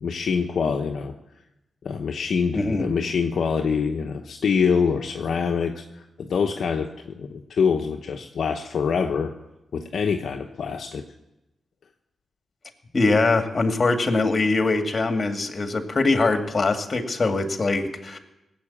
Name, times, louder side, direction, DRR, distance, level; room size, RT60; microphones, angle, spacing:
voice 1, 0.0-1.1 1.8-9.3 9.7-11.0, left 6 dB, 70° left, 3 dB, 0.9 m, -25 dB
voice 2, 2.5-2.9 12.9-18.2, left 3 dB, 45° left, 5 dB, 2.1 m, -22 dB
18.0 x 8.0 x 8.6 m, 0.93 s
cardioid pair, 55°, 0 cm